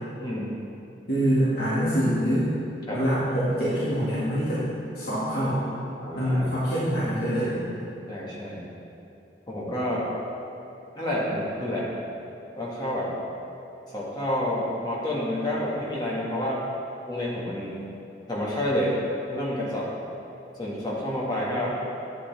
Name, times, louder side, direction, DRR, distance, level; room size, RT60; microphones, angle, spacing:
voice 1, 0.2-0.5 2.9-3.0 6.0-6.5 8.1-8.6 9.5-10.1 11.0-11.9 12.6-13.1 13.9-16.6 17.1-17.8 18.3-18.9 19.3-19.9 20.6-21.7, left 1 dB, 25° left, -6 dB, 1.7 m, -29 dB
voice 2, 1.1-2.5 2.9-4.6 4.9-5.6 6.1-7.5, equal, 55° left, -11 dB, 2.0 m, -25 dB
9.7 x 8.7 x 3.4 m, 2.8 s
head